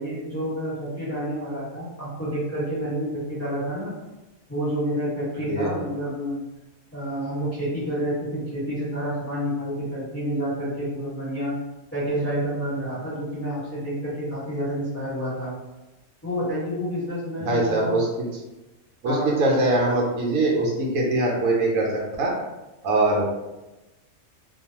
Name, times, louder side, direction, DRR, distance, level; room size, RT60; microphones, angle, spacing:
voice 1, 0.0-3.9 4.5-6.4 6.9-11.5 11.9-15.5 16.2-17.9 19.0-19.6, equal, 10° left, -11 dB, 1.2 m, -29 dB
voice 2, 5.5-5.8 17.4-18.1 19.0-22.3 22.8-23.4, right 2 dB, 80° right, -2 dB, 1.0 m, -22 dB
2.4 x 2.2 x 2.8 m, 1.0 s
omnidirectional pair, 1.5 m